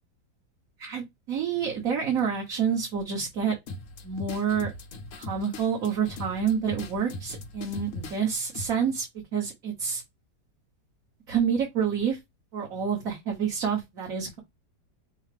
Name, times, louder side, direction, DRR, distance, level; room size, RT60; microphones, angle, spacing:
voice 1, 0.8-3.5 4.0-4.7 5.2-9.1 9.3-10.0 11.3-12.2 12.5-14.4, right 7 dB, 55° right, 1.6 m, -28 dB
sound 1, 3.7-8.7, left 2 dB, 55° left, 1.0 m, -39 dB
6.2 x 2.2 x 3.3 m
omnidirectional pair, 1.9 m